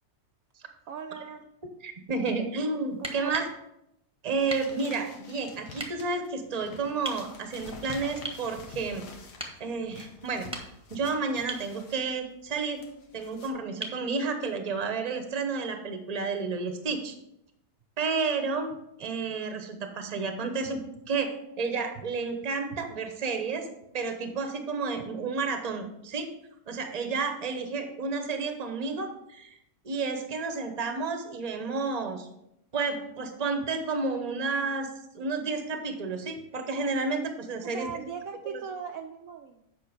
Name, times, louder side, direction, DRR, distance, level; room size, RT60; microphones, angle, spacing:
voice 1, 0.9-1.5 3.0-3.3 37.6-39.7, right 6 dB, 70° right, 4 dB, 0.9 m, -39 dB
voice 2, 1.8-3.5 4.2-9.0 9.6-10.5 10.9-12.8 13.1-17.1 18.0-20.8 21.1-23.7 23.9-26.3 26.7-29.6 29.8-32.3 32.7-34.9 35.1-37.9 38.4-38.6, right 4 dB, 30° right, 6 dB, 0.9 m, -31 dB
sound 1, 2.9-3.6 4.5-4.7 5.8-5.9 7.0-7.2 8.2-8.5 9.4-9.6 10.3-10.9 11.5-11.7 13.8-14.0 15.9-16.0, right 2 dB, 5° right, 1.0 m, -37 dB
sound 2, 4.3-13.5, left 4 dB, 80° left, 1.7 m, -48 dB
8.5 x 5.6 x 5.0 m, 0.81 s
omnidirectional pair, 1.7 m